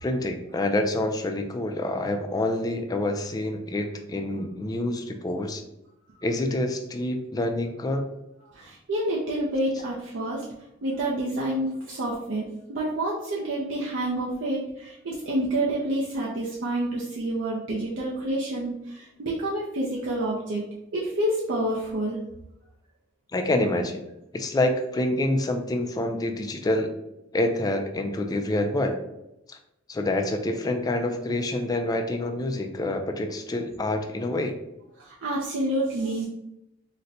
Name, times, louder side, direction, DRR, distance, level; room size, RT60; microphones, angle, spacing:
voice 1, 0.0-5.6 6.2-8.1 23.3-24.0 24.3-26.9 27.3-29.0 29.5-29.6 29.9-34.5, left 1 dB, 20° left, 4 dB, 0.3 m, -27 dB
voice 2, 8.5-10.4 10.8-20.7 20.9-22.2 35.0-36.3, right 1 dB, 75° right, -4 dB, 0.5 m, -28 dB
4.0 x 2.1 x 2.6 m, 0.87 s
head